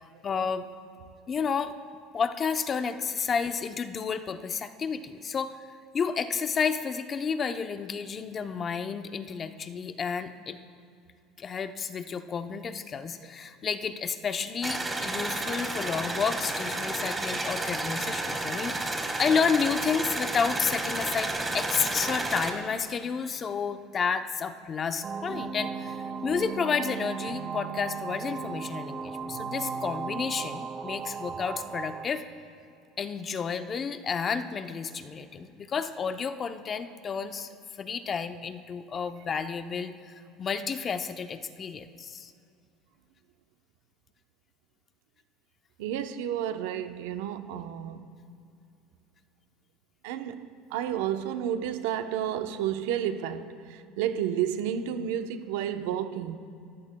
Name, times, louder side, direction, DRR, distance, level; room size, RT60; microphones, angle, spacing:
voice 1, 0.2-0.7 1.3-1.7 2.1-5.6 5.9-10.6 11.4-32.2 33.0-37.5 37.8-42.3, left 6 dB, 30° left, 0.7 m, -31 dB
sound 1, 14.6-22.5, right 2 dB, 10° right, 1.6 m, -31 dB
sound 2, 25.0-32.1, right 6 dB, 30° right, 0.9 m, -36 dB
voice 2, 45.8-48.1 50.0-56.4, right 10 dB, 85° right, 0.8 m, -31 dB
29.0 x 14.5 x 2.3 m
supercardioid pair, 115°, 0 cm